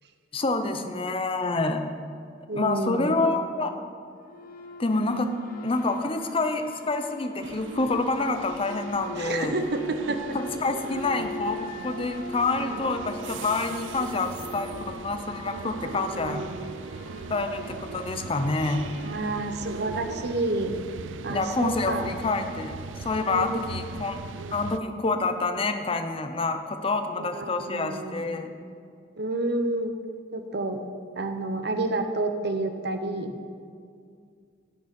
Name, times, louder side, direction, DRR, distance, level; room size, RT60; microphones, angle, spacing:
voice 1, 0.3-1.8 2.5-3.8 4.8-5.3 5.6-9.6 10.6-16.4 17.3-18.9 21.3-24.2 24.5-28.5, left 3 dB, 30° left, 7 dB, 0.6 m, -27 dB
voice 2, 2.5-3.1 9.2-10.2 15.8-16.8 19.0-20.8 21.2-22.2 23.3-23.6 23.9-24.0 27.2-28.4 29.2-29.9 30.3-30.8 31.2-33.3, right 2 dB, 60° right, 7 dB, 0.8 m, -30 dB
sound 1, 4.2-20.8, left 2 dB, 50° left, 1.0 m, -43 dB
sound 2, 7.4-24.8, right 4 dB, 85° right, 0.4 m, -40 dB
11.0 x 6.6 x 5.2 m, 2.2 s
head